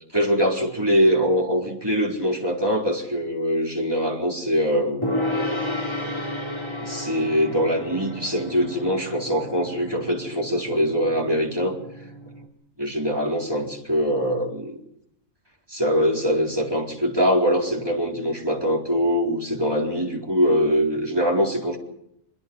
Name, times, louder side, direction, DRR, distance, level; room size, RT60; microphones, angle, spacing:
voice 1, 0.1-5.1 6.8-11.8 12.8-14.8 15.7-21.8, equal, 20° right, -1 dB, 4.1 m, -23 dB
Gong, 5.0-12.5, left 1 dB, 20° left, 3.4 m, -32 dB
25.0 x 22.5 x 5.4 m, 0.78 s
omnidirectional pair, 1.2 m